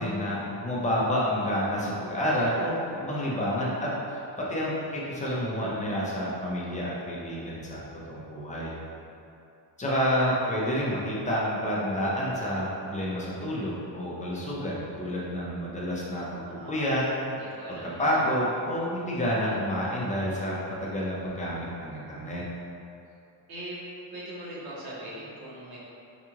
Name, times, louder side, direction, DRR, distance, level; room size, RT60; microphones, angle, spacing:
voice 1, 0.0-7.8 8.1-8.7 9.8-17.0 17.7-22.4, equal, 15° left, -6 dB, 0.5 m, -29 dB
voice 2, 16.4-17.0 17.2-18.2 23.5-23.8 24.1-25.8, right 1 dB, 55° right, -7 dB, 1.1 m, -41 dB
4.6 x 2.4 x 2.9 m, 2.7 s
cardioid pair, 150°, 44 cm